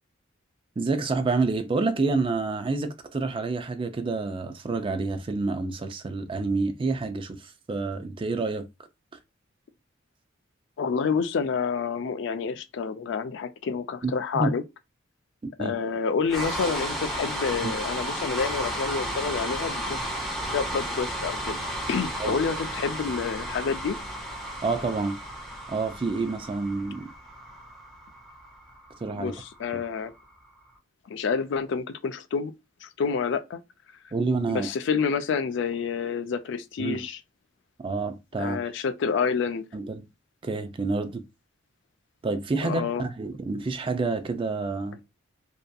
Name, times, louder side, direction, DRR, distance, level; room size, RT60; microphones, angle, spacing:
voice 1, 0.8-7.4 7.7-8.7 14.0-14.5 15.6-15.8 17.6-17.7 22.2-22.3 24.6-25.2 25.7-27.1 29.0-29.3 34.1-34.7 36.8-37.0 37.8-38.6 39.7-40.0 40.4-41.2 42.2-45.0, right 3 dB, 25° right, 0.3 m, -28 dB
voice 2, 10.8-14.6 15.6-20.0 20.5-21.6 21.9-24.0 29.1-30.1 31.1-32.5 32.8-33.6 34.5-37.2 38.4-39.6 42.6-43.0, left 5 dB, 60° left, 0.3 m, -28 dB
sound 1, 16.3-30.4, equal, ahead, 0.6 m, -33 dB
2.6 x 2.4 x 2.2 m
head